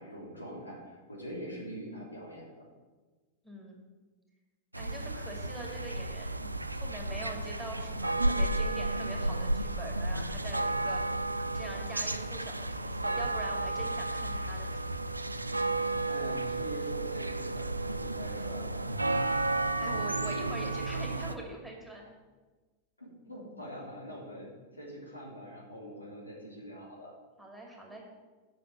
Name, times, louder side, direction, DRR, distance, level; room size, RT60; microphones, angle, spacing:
voice 1, 0.0-2.6 16.0-18.9 23.0-27.1, equal, 80° left, -4 dB, 3.3 m, -44 dB
voice 2, 3.4-3.8 4.7-11.0 11.5-14.9 19.8-22.1 27.4-28.0, right 1 dB, ahead, -1 dB, 2.3 m, -44 dB
sound 1, 4.7-21.3, right 2 dB, 85° right, 0.4 m, -32 dB
8.4 x 6.1 x 8.1 m, 1.3 s
figure-of-eight pair, 90°, 0 cm